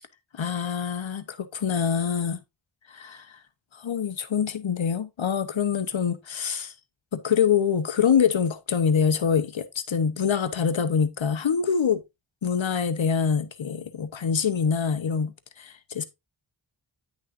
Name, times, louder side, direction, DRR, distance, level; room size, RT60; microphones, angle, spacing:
voice 1, 0.4-2.4 2.9-3.4 3.7-6.7 7.1-12.0 12.4-16.0, left 7 dB, 70° left, 0.9 m, -25 dB
9.9 x 6.3 x 2.5 m
wide cardioid pair, 65°, 47 cm